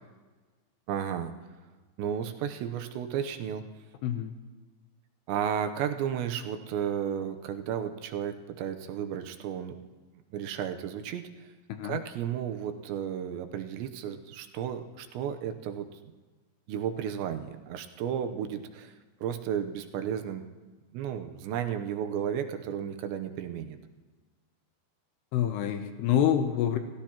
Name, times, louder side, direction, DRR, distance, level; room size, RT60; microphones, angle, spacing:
voice 1, 0.9-1.4 2.0-3.6 5.3-9.8 10.3-11.5 11.8-15.9 16.7-18.9 19.2-20.4 20.9-23.8, right 9 dB, 80° right, 7 dB, 3.1 m, -33 dB
voice 2, 4.0-4.3 11.7-12.0 25.3-26.8, left 10 dB, 75° left, 7 dB, 2.7 m, -27 dB
29.5 x 15.0 x 3.0 m, 1.3 s
omnidirectional pair, 5.3 m